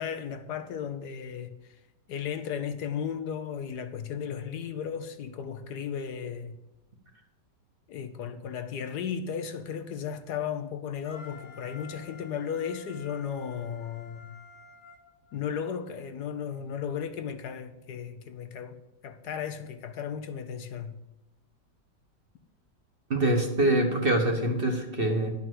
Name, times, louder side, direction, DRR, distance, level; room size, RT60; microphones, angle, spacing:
voice 1, 0.0-1.8 2.1-6.6 7.9-14.3 15.3-18.8 19.0-21.0, left 7 dB, 70° left, 1.3 m, -35 dB
Wind instrument woodwind instrument, 11.0-15.8, left 4 dB, 45° left, 1.4 m, -50 dB
voice 2, 23.1-25.3, right 1 dB, 35° right, 1.3 m, -24 dB
11.0 x 5.6 x 7.7 m
omnidirectional pair, 1.9 m